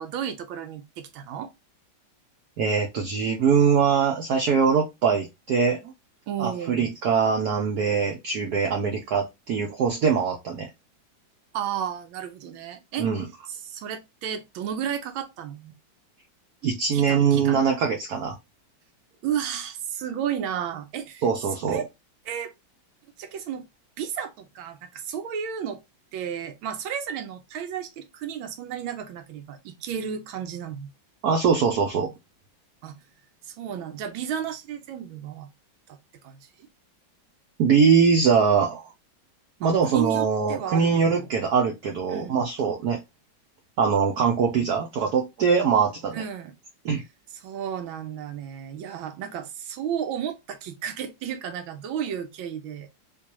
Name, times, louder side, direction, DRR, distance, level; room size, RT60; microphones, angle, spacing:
voice 1, 0.0-1.5 6.3-6.9 11.5-13.1 13.5-15.7 16.9-17.7 19.2-21.2 21.5-21.9 22.3-22.5 23.2-23.7 24.0-25.8 26.1-30.9 32.8-33.0 33.4-35.5 35.9-36.0 36.2-36.7 39.6-41.3 42.1-42.5 46.1-46.5 47.3-52.9, right 8 dB, 90° right, 1.5 m, -33 dB
voice 2, 2.6-5.9 6.4-10.7 13.0-13.2 16.6-18.4 21.2-21.8 31.2-32.1 37.6-38.9 39.6-43.0 43.8-46.2 46.8-47.0, right 6 dB, 65° right, 1.0 m, -22 dB
3.7 x 2.6 x 2.9 m
omnidirectional pair, 2.1 m